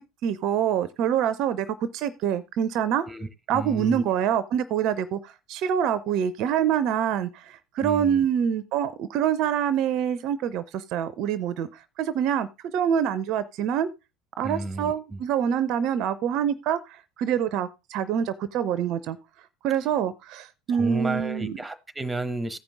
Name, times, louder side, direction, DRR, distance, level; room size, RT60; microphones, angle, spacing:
voice 1, 0.2-3.1 3.5-11.7 12.0-12.5 12.7-13.9 14.4-19.2 19.6-21.6, right 9 dB, 55° right, 0.5 m, -26 dB
voice 2, 3.1-4.0 7.8-8.2 14.4-15.2 20.7-22.6, right 2 dB, 10° right, 0.9 m, -32 dB
14.5 x 5.2 x 3.5 m
figure-of-eight pair, 70°, 0 cm